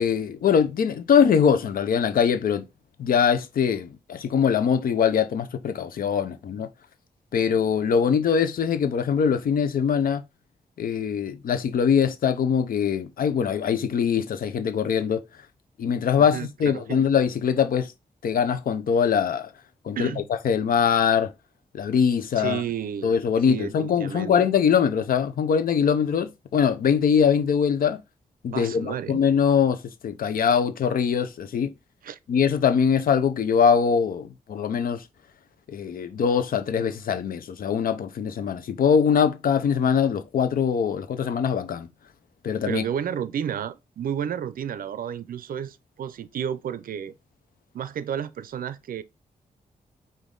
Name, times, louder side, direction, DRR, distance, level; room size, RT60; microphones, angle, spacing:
voice 1, 0.0-2.6 3.0-6.7 7.3-10.2 10.8-15.2 15.8-17.9 18.2-19.5 19.9-20.1 20.4-21.3 21.7-22.6 23.0-28.0 28.4-31.7 32.3-35.0 35.7-41.9 42.4-42.8, left 7 dB, 80° left, 0.6 m, -22 dB
voice 2, 16.2-17.0 20.0-20.3 22.4-23.1 23.5-24.5 28.5-29.2 32.0-32.2 42.6-47.1 47.7-49.0, right 9 dB, 75° right, 0.5 m, -32 dB
5.2 x 2.6 x 3.7 m
wide cardioid pair, 115°, 15 cm